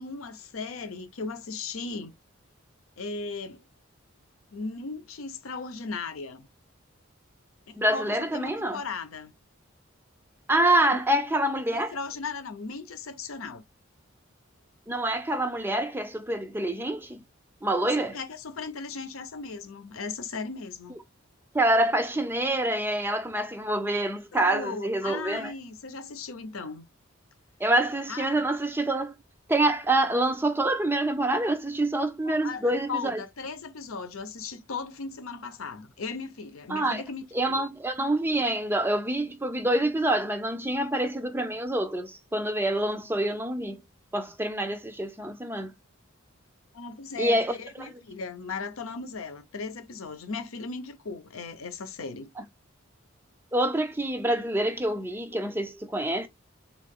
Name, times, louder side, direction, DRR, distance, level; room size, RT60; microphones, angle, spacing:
voice 1, 0.0-2.2 3.0-3.6 4.5-6.5 7.7-9.3 10.9-11.2 11.7-13.6 17.8-21.0 24.3-26.9 28.1-28.4 32.2-37.6 46.7-52.3, left 4 dB, 85° left, 0.7 m, -37 dB
voice 2, 7.8-8.8 10.5-11.9 14.9-17.2 17.6-18.2 21.5-25.5 27.6-29.1 29.5-33.2 36.7-37.0 37.3-43.8 44.1-45.7 47.2-47.9 52.4-52.5 53.5-56.3, right 1 dB, 10° right, 0.4 m, -26 dB
3.7 x 2.5 x 3.5 m
head